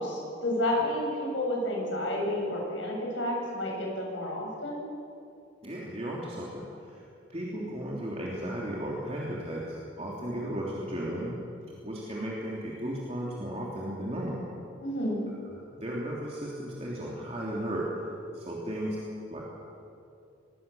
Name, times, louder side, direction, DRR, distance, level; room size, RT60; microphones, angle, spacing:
voice 1, 0.0-4.8 14.8-15.2, left 1 dB, 85° left, -1 dB, 7.4 m, -30 dB
voice 2, 5.6-6.6 7.3-11.4 11.8-14.4 15.7-17.9 18.3-19.0 19.3-19.4, right 1 dB, 30° right, -4 dB, 3.2 m, -35 dB
25.0 x 21.0 x 7.1 m, 2.6 s
head